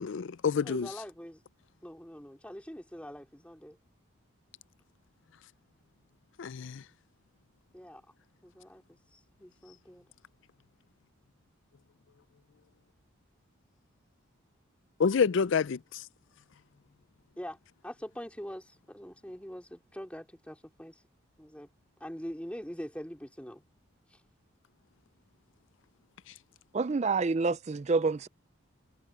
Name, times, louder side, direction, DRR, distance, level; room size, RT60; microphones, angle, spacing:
voice 1, 0.0-0.9 6.4-6.8 15.0-16.0, left 6 dB, 60° left, 0.4 m, -28 dB
voice 2, 0.6-1.4 1.8-3.8 7.2-7.3 7.7-8.0 8.4-8.8 9.1-10.1 17.4-21.0 21.4-21.7 22.0-23.6 24.1-24.2, equal, 5° left, 3.5 m, -43 dB
voice 3, 26.7-28.3, right 4 dB, 30° right, 0.4 m, -28 dB
head